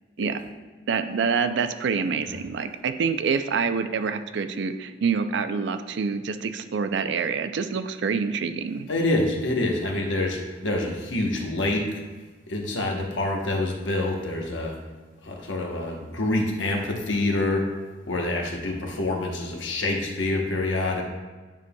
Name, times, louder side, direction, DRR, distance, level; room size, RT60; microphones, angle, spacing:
voice 1, 0.9-8.9, right 5 dB, 65° right, 9 dB, 0.4 m, -26 dB
voice 2, 8.9-11.9 12.5-14.8 15.2-17.7 18.1-21.0, left 2 dB, 85° left, 1 dB, 1.0 m, -26 dB
9.0 x 5.3 x 2.2 m, 1.3 s
head